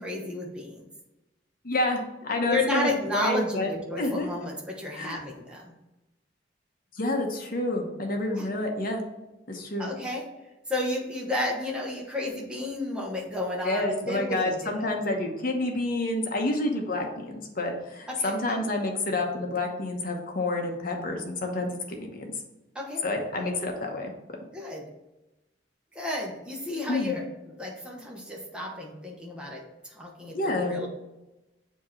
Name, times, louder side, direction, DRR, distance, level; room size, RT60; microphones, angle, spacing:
voice 1, 0.0-0.9 2.4-5.7 8.2-8.5 9.8-10.2 10.7-14.9 18.1-18.6 22.7-23.0 24.5-24.9 25.9-30.9, left 1 dB, 5° right, -2 dB, 1.1 m, -32 dB
voice 2, 1.6-3.7 4.0-4.3 5.0-5.2 6.9-9.0 9.5-9.9 13.6-22.2 23.0-24.1 26.9-27.2 30.3-30.8, left 2 dB, 50° left, 2 dB, 1.0 m, -29 dB
7.3 x 2.9 x 4.5 m, 0.99 s
head